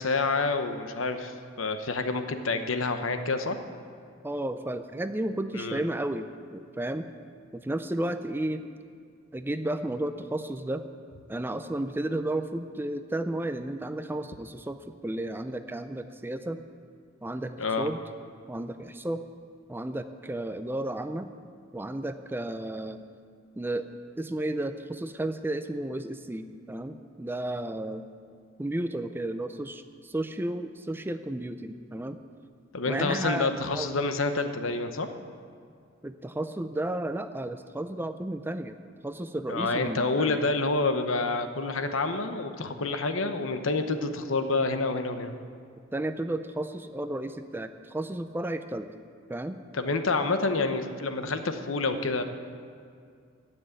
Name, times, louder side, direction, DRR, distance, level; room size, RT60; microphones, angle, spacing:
voice 1, 0.0-3.6 5.5-5.8 17.6-17.9 32.7-35.1 39.5-45.3 49.7-52.2, left 3 dB, 70° left, 8 dB, 0.9 m, -28 dB
voice 2, 4.2-7.1 7.5-8.6 9.3-10.8 11.3-16.6 17.2-18.0 18.5-19.2 19.7-21.3 21.7-23.0 23.6-23.8 24.2-28.1 28.6-32.2 32.9-33.9 36.0-38.7 39.0-40.4 45.9-48.9 49.3-49.6, right 1 dB, 10° right, 9 dB, 0.4 m, -33 dB
15.5 x 6.2 x 9.0 m, 2.2 s
head